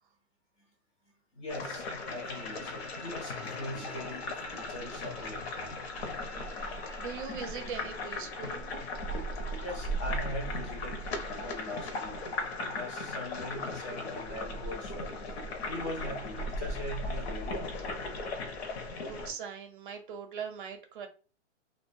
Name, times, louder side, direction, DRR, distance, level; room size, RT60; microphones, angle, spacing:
voice 1, 1.4-5.7 9.6-11.0 11.4-12.3 12.7-15.1 15.7-18.0, left 1 dB, 25° left, 0.4 m, -41 dB
sound 1, 1.5-19.3, left 1 dB, 60° left, 0.7 m, -37 dB
Bowed string instrument, 2.0-7.1, right 1 dB, 80° left, 1.1 m, -51 dB
voice 2, 6.6-8.7 19.0-21.1, right 6 dB, 45° right, 0.5 m, -41 dB
2.3 x 2.2 x 2.5 m
hypercardioid pair, 150°, 37 cm